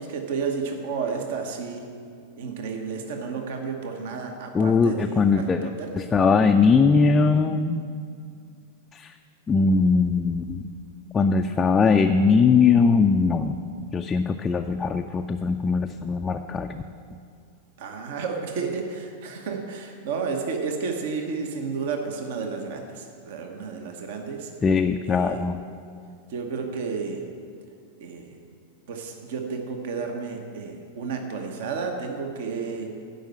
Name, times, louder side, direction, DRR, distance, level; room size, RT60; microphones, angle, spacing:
voice 1, 0.0-1.8 2.4-5.9 17.8-24.5 25.0-25.4 26.3-27.2 28.0-28.3 28.9-32.9, right 5 dB, 55° right, 4 dB, 1.0 m, -32 dB
voice 2, 4.5-7.8 8.9-9.1 9.5-10.6 11.1-13.6 13.9-16.8 24.6-25.6, left 4 dB, 20° left, 4 dB, 0.4 m, -20 dB
11.5 x 5.5 x 7.7 m, 2.3 s
figure-of-eight pair, 90°, 0 cm